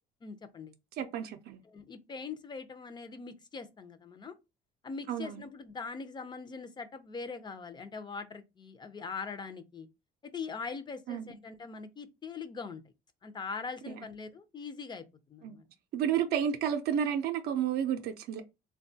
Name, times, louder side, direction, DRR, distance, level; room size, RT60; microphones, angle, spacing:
voice 1, 0.2-0.7 1.6-4.3 4.8-9.9 10.2-12.8 13.2-15.6, left 5 dB, 25° left, 0.4 m, -42 dB
voice 2, 1.0-1.6 5.1-5.3 11.1-11.3 13.9-14.0 15.4-15.5 15.9-18.4, right 9 dB, 70° right, 0.5 m, -31 dB
3.5 x 2.2 x 2.6 m
cardioid pair, 110°, 17 cm